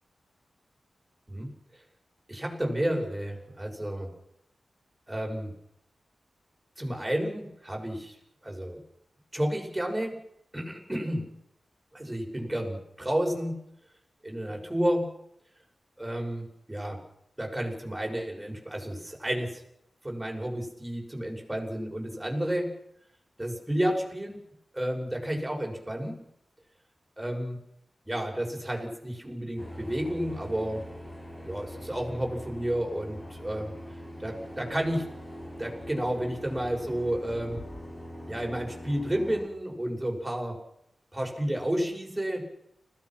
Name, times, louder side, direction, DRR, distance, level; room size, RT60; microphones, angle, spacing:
voice 1, 2.3-4.1 5.1-5.5 6.8-8.1 8.4-8.8 9.3-10.2 10.5-11.3 11.9-13.6 14.2-15.1 16.0-17.0 17.4-19.6 20.0-22.7 23.4-24.4 24.7-26.2 27.2-27.6 28.0-30.8 31.4-33.7 34.2-35.0 35.6-37.6 38.3-40.5 41.1-42.4, right 1 dB, 10° right, 0 dB, 6.3 m, -31 dB
sound 1, 29.6-39.5, equal, 25° left, 6.9 m, -42 dB
30.0 x 16.5 x 6.0 m, 0.77 s
wide cardioid pair, 125°, 0 cm